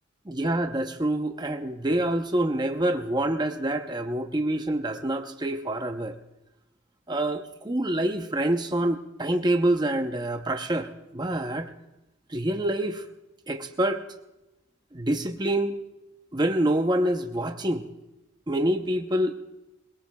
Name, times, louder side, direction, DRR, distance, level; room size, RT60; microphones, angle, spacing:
voice 1, 0.3-6.2 7.1-11.7 12.3-13.1 13.5-14.0 14.9-15.8 16.3-17.8 18.5-19.3, right 1 dB, 20° right, 6 dB, 0.7 m, -26 dB
22.5 x 21.5 x 2.3 m, 0.95 s
head